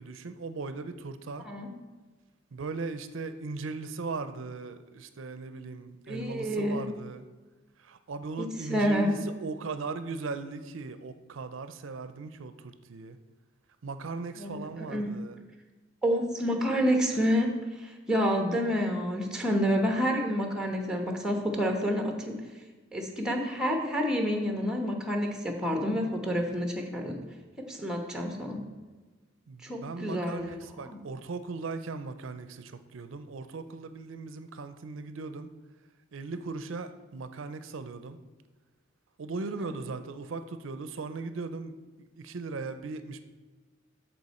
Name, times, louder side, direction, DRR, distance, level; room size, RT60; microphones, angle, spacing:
voice 1, 0.0-1.4 2.5-7.2 7.8-13.2 13.8-15.4 29.5-35.5 36.1-38.2 39.2-41.7 42.2-43.2, right 4 dB, 80° right, 10 dB, 0.5 m, -38 dB
voice 2, 6.1-6.8 8.4-9.2 14.4-15.1 16.0-17.5 17.8-22.4 22.9-27.2 27.6-28.6 29.6-30.5 30.8-31.0 39.6-39.7, equal, 5° right, 2 dB, 1.2 m, -29 dB
13.0 x 4.5 x 4.2 m, 1.3 s
head